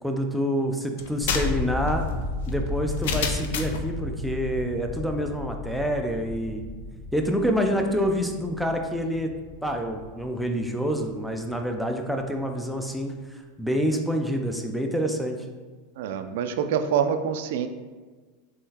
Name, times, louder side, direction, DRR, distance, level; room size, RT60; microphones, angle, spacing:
voice 1, 0.0-2.0 2.5-6.6 7.1-9.3 9.6-15.4, equal, ahead, 3 dB, 0.4 m, -27 dB
sound 1, 1.0-3.9, left 5 dB, 75° left, 0.4 m, -30 dB
sound 2, 1.2-11.2 11.5-12.2, left 2 dB, 55° left, 1.1 m, -34 dB
voice 2, 16.0-17.7, right 8 dB, 70° right, 8 dB, 0.3 m, -26 dB
3.7 x 3.1 x 2.8 m, 1.4 s
supercardioid pair, 125°, 0 cm